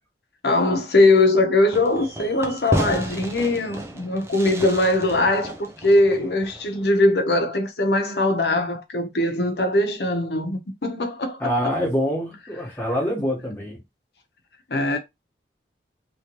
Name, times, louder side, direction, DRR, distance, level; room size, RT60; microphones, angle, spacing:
voice 1, 0.4-11.4 13.5-13.6 14.7-15.0, left 2 dB, 70° left, 0.9 m, -21 dB
Fireworks, 1.7-7.0, right 1 dB, 15° right, 0.5 m, -32 dB
voice 2, 11.4-13.8, equal, 10° left, 1.2 m, -25 dB
3.1 x 2.9 x 3.0 m
head